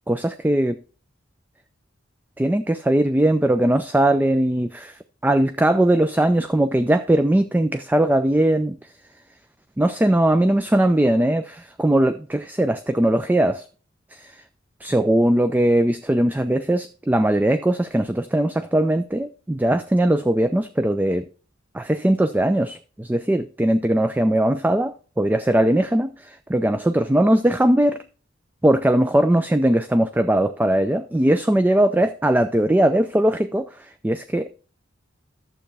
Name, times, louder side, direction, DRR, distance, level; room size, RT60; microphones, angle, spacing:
voice 1, 0.1-0.8 2.4-5.0 5.2-8.8 9.8-13.6 14.2-14.3 14.8-21.3 21.7-28.0 28.6-33.7 34.0-34.7, right 1 dB, 10° right, 0.3 m, -20 dB
11.5 x 7.5 x 3.3 m
head